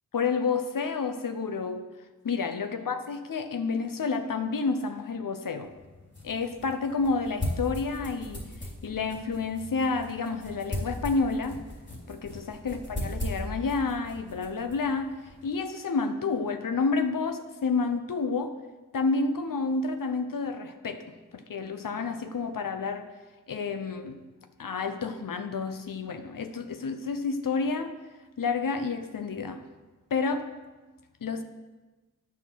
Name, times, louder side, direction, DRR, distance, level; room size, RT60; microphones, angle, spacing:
voice 1, 0.1-1.9 2.2-5.7 6.2-8.5 8.8-11.6 12.1-15.1 15.4-18.6 18.9-23.1 23.5-24.2 24.6-28.0 28.4-29.6 30.1-30.5 31.2-31.4, left 4 dB, 80° left, 8 dB, 0.8 m, -30 dB
sound 1, 5.6-15.5, left 1 dB, 35° left, 2.9 m, -38 dB
9.2 x 6.0 x 6.2 m, 1.2 s
wide cardioid pair, 80°, 32 cm